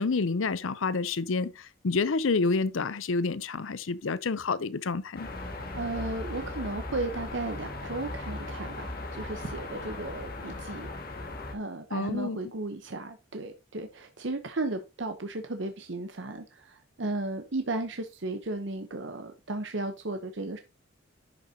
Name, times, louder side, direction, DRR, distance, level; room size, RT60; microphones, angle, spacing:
voice 1, 0.0-5.3 11.9-12.4, left 4 dB, 70° left, 0.6 m, -28 dB
sound 1, 5.2-11.6, left 2 dB, 45° left, 1.9 m, -38 dB
voice 2, 5.7-10.9 11.5-20.6, right 2 dB, 60° right, 1.0 m, -35 dB
11.0 x 6.6 x 2.8 m
head